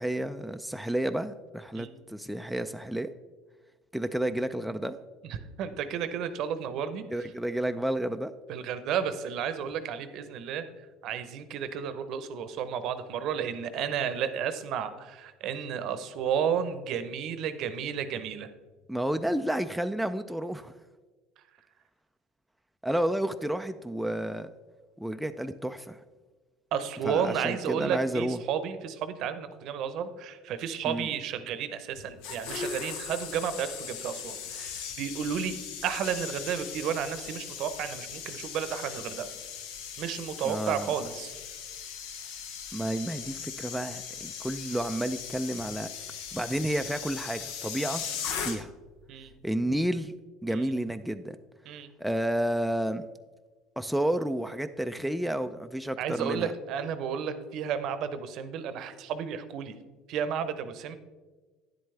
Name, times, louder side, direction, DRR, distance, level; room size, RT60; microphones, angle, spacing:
voice 1, 0.0-3.1 3.9-5.0 7.1-8.3 18.9-20.7 22.8-24.5 25.0-26.0 27.0-28.4 30.8-31.1 40.4-40.9 42.7-45.9 46.3-48.0 48.4-48.7 49.4-50.1 50.4-51.4 52.0-53.0 53.8-56.5, right 1 dB, ahead, 7 dB, 0.4 m, -31 dB
voice 2, 5.2-7.0 8.5-10.6 11.0-18.5 26.7-35.5 35.8-39.3 40.0-41.3 48.0-48.6 49.1-49.3 50.5-50.7 51.6-51.9 56.0-59.7 60.1-61.0, right 8 dB, 60° right, 12 dB, 0.7 m, -32 dB
sound 1, 32.0-48.9 49.2-49.5, left 7 dB, 80° left, 0.9 m, -39 dB
9.7 x 7.8 x 3.3 m, 1.3 s
supercardioid pair, 100°, 0 cm